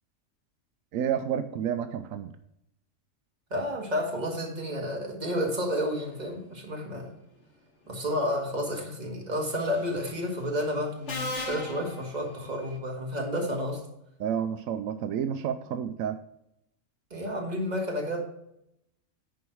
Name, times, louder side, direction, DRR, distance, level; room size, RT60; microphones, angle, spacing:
voice 1, 0.9-2.3 14.2-16.2, right 8 dB, 85° right, 9 dB, 1.0 m, -30 dB
voice 2, 3.5-7.2 7.9-13.8 17.1-18.2, equal, 30° right, 0 dB, 2.0 m, -31 dB
Subway metro underground, 9.6-9.9 11.1-12.8, left 2 dB, 60° left, 1.7 m, -37 dB
10.0 x 4.6 x 4.6 m, 0.79 s
omnidirectional pair, 1.4 m